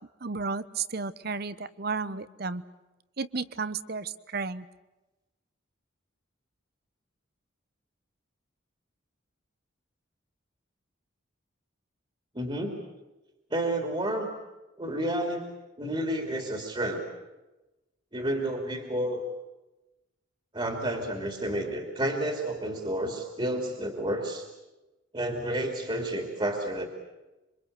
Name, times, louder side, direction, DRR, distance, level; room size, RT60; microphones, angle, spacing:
voice 1, 0.2-2.6 3.2-4.7, right 4 dB, 50° right, 15 dB, 1.0 m, -33 dB
voice 2, 12.3-12.8 13.5-14.3 14.8-15.5 15.8-17.0 18.1-19.2 20.5-24.5 25.1-26.9, right 1 dB, 25° right, 4 dB, 2.9 m, -30 dB
26.5 x 25.0 x 8.1 m, 1.0 s
head